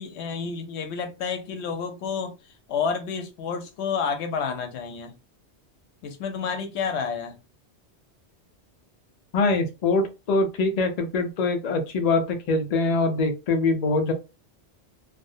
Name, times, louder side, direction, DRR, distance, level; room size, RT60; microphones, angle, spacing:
voice 1, 0.0-2.3 2.7-5.2 6.0-7.4, left 6 dB, 85° left, 0.9 m, -30 dB
voice 2, 9.3-14.1, left 3 dB, 50° left, 0.5 m, -23 dB
2.5 x 2.1 x 2.5 m
omnidirectional pair, 1.1 m